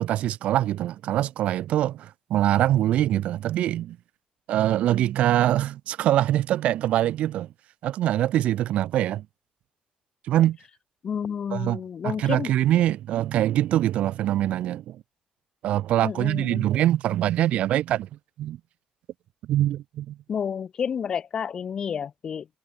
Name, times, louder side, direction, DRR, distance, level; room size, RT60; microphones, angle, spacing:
voice 1, 0.0-4.0 4.5-7.5 7.8-9.3 10.2-10.6 11.5-15.0 15.6-18.1 18.4-18.6 19.5-20.2, right 13 dB, 70° right, 0.4 m, -23 dB
voice 2, 11.0-12.5 16.0-16.6 20.3-22.5, left 7 dB, 35° left, 1.2 m, -30 dB
cardioid pair, 175°, 2 cm